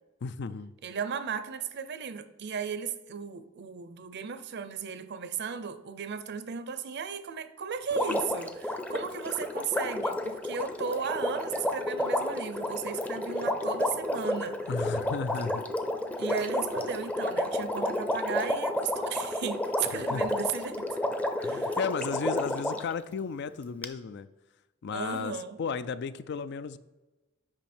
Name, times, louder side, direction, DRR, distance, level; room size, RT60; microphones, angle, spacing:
voice 1, 0.2-0.7 14.7-15.7 19.9-20.3 21.4-24.3 24.8-26.8, left 5 dB, 55° left, 14 dB, 0.4 m, -34 dB
voice 2, 0.8-14.7 16.2-21.0 21.4-21.8 24.9-25.6, right 6 dB, 55° right, 11 dB, 0.6 m, -35 dB
Water, 7.9-22.9 23.8-23.9, left 1 dB, 5° left, 0.6 m, -31 dB
8.9 x 5.6 x 4.3 m, 1.1 s
head